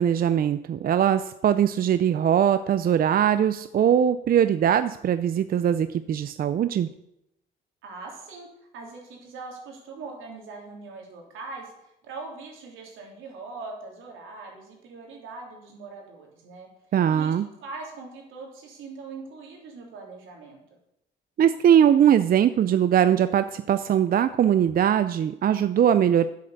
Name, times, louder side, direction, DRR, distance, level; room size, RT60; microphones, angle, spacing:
voice 1, 0.0-6.9 16.9-17.5 21.4-26.3, right 9 dB, 50° right, 12 dB, 0.5 m, -21 dB
voice 2, 7.8-8.5 8.7-11.7 12.0-16.7 17.1-17.3 17.6-20.6, right 3 dB, 85° right, 0 dB, 3.2 m, -41 dB
8.5 x 7.7 x 6.6 m, 0.82 s
cardioid pair, 90°, 20 cm